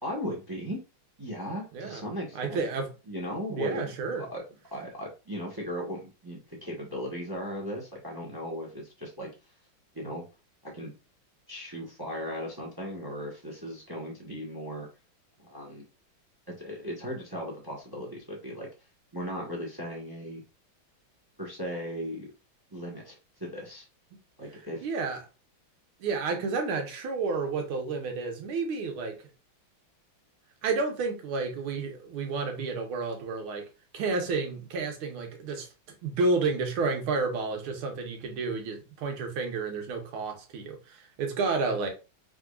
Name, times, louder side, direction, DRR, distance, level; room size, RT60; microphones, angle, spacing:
voice 1, 0.0-0.8 1.2-2.6 3.1-3.9 4.2-4.4 4.7-9.3 9.9-10.2 10.6-10.9 11.5-14.9 15.4-15.9 16.5-18.7 19.1-20.4 21.4-22.3 22.7-23.1 23.4-23.8 24.4-24.9, equal, 20° right, 0.6 m, -37 dB
voice 2, 2.3-2.9 3.5-4.2 24.5-25.2 26.0-29.2 30.6-33.6 33.9-35.7 36.0-41.9, right 4 dB, 85° right, 1.9 m, -31 dB
4.9 x 3.5 x 2.3 m
omnidirectional pair, 2.3 m